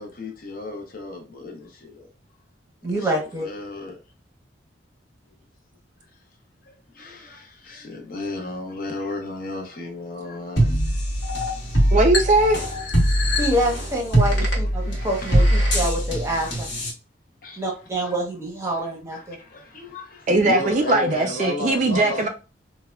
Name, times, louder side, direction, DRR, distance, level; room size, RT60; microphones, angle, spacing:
voice 1, 0.0-2.1 2.9-4.0 6.6-12.1 13.3-13.4 14.6-16.0 16.3-16.5 17.4-18.2 18.7-22.3, left 2 dB, 45° left, 0.6 m, -35 dB
voice 2, 2.8-3.5 13.4-16.5 17.6-19.4, right 1 dB, 15° right, 0.7 m, -26 dB
sound 1, 10.6-16.9, equal, 65° left, 1.0 m, -22 dB
voice 3, 11.9-12.7 20.3-22.3, right 2 dB, 40° right, 0.3 m, -19 dB
3.3 x 2.1 x 2.2 m
head